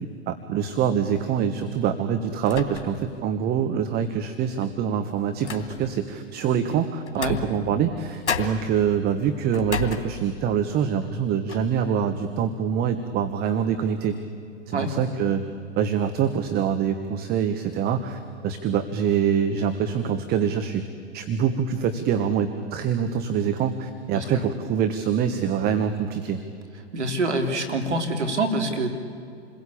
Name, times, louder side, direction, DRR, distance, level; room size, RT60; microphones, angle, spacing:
voice 1, 0.0-7.0 7.5-14.2 14.7-15.4 15.8-20.8 21.1-26.4, right 8 dB, 30° right, 8 dB, 1.4 m, -25 dB
sound 1, 1.1-1.4 2.5-3.2 3.6-3.7 4.6-6.1 7.1-8.0 8.3-10.6 11.0-11.2 11.5-11.8, left 5 dB, 80° left, 2.8 m, -33 dB
voice 2, 24.1-24.4 26.9-28.9, right 2 dB, 80° right, 5 dB, 3.7 m, -26 dB
28.0 x 21.5 x 8.7 m, 2.6 s
hypercardioid pair, 115°, 34 cm